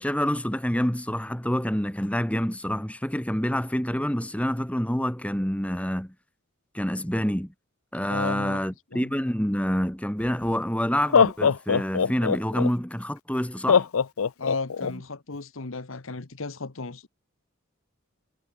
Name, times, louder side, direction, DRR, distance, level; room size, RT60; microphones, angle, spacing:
voice 1, 0.0-6.1 6.7-7.5 7.9-13.9 14.9-15.0, equal, 5° left, 1.8 m, -27 dB
voice 2, 8.1-8.6 8.9-9.1 14.4-17.1, left 3 dB, 70° left, 1.2 m, -34 dB
Laughter, 10.2-10.3 11.0-12.7 13.7-14.9, left 6 dB, 90° left, 0.6 m, -21 dB
head